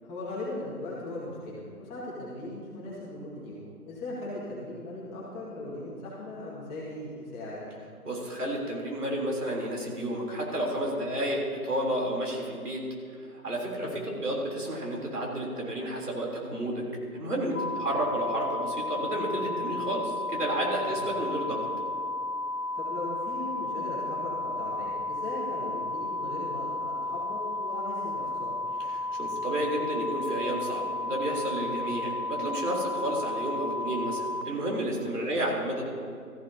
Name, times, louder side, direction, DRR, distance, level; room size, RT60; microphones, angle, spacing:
voice 1, 0.0-7.6 11.0-11.2 13.7-13.9 17.7-17.9 20.9-21.0 22.7-28.5 31.7-31.9 35.1-35.4, left 2 dB, 10° left, -7 dB, 1.9 m, -39 dB
voice 2, 8.1-12.8 13.4-16.8 17.1-21.6 29.2-35.8, right 1 dB, 80° right, -2 dB, 3.7 m, -31 dB
sound 1, 17.5-34.4, left 2 dB, 60° left, 1.1 m, -33 dB
15.5 x 14.5 x 2.8 m, 2.3 s
figure-of-eight pair, 150°, 45 cm